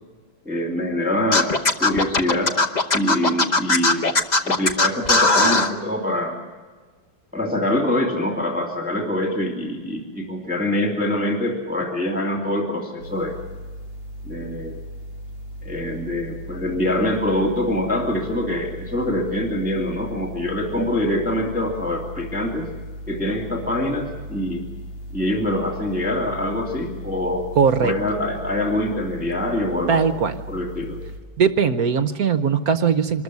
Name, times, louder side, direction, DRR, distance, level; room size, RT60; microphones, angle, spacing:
voice 1, 0.4-1.5 1.8-2.6 2.9-4.1 4.4-6.4 7.3-13.4 14.2-14.8 15.6-22.6 23.1-24.6 25.1-27.5 27.8-30.1 30.5-31.0, left 1 dB, 5° right, 0 dB, 2.3 m, -24 dB
Scratching (performance technique), 1.3-5.7, left 3 dB, 30° left, 0.8 m, -18 dB
sound 1, 13.0-31.2, equal, 75° left, 3.9 m, -37 dB
voice 2, 27.6-27.9 29.9-30.4 31.4-33.2, right 6 dB, 60° right, 11 dB, 1.1 m, -19 dB
25.0 x 14.0 x 9.5 m, 1.4 s
omnidirectional pair, 2.2 m